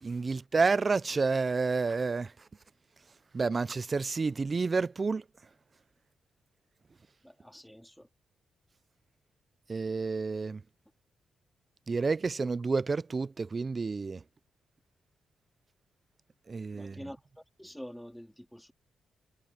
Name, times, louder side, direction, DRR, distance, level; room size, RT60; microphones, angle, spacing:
voice 1, 0.0-2.3 3.3-5.2 9.7-10.6 11.9-14.2 16.5-17.0, right 4 dB, 25° right, 0.4 m, -29 dB
voice 2, 7.2-8.1 16.7-18.7, equal, ahead, 3.4 m, -47 dB
wide cardioid pair, 160°, 0 cm